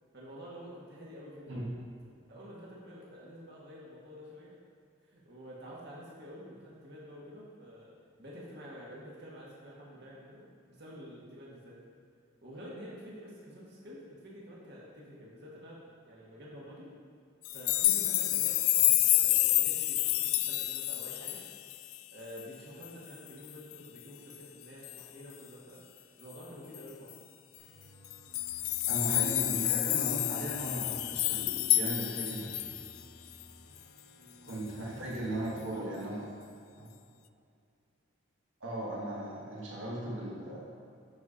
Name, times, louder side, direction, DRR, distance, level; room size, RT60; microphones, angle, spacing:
voice 1, 0.1-1.6 2.3-4.5 5.0-7.9 8.2-10.4 10.7-11.8 12.4-16.9 17.5-21.4 22.1-27.1 34.2-36.1, equal, 55° right, -5 dB, 1.5 m, -49 dB
sound 1, 17.4-22.0 22.4-22.5 22.8-22.9 23.3-23.7 24.8-25.1 26.7-26.8 27.1-27.2 28.0-32.9 33.4-33.5, left 17 dB, 90° left, 0.3 m, -29 dB
sound 2, 27.6-35.6, equal, 65° left, 1.3 m, -57 dB
voice 2, 28.8-32.7 34.5-36.2 36.8-36.9 38.6-40.7, right 1 dB, 70° right, -5 dB, 1.5 m, -37 dB
10.5 x 4.2 x 5.0 m, 2.4 s
head